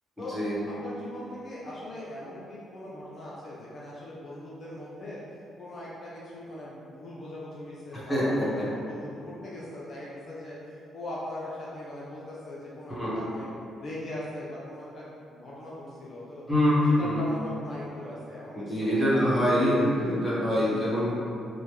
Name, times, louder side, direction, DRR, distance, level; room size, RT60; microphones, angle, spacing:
voice 1, 0.7-5.2 5.6-13.5 13.8-16.4 17.0-19.8 20.5-21.1, left 1 dB, 50° left, -7 dB, 0.5 m, -40 dB
voice 2, 7.9-8.6 12.9-13.2 16.5-17.2 18.5-21.1, equal, ahead, -11 dB, 1.2 m, -25 dB
3.3 x 2.1 x 3.1 m, 2.6 s
cardioid pair, 90°, 0 cm